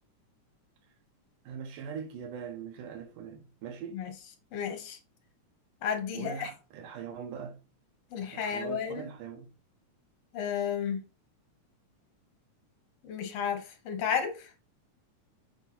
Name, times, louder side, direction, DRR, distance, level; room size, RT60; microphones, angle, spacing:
voice 1, 1.5-4.0 6.1-7.6 8.3-9.5, right 7 dB, 85° right, 2.5 m, -41 dB
voice 2, 4.5-5.0 5.8-6.5 8.1-9.1 10.3-11.1 13.0-14.5, left 7 dB, 60° left, 2.1 m, -32 dB
6.9 x 4.5 x 4.1 m
omnidirectional pair, 3.7 m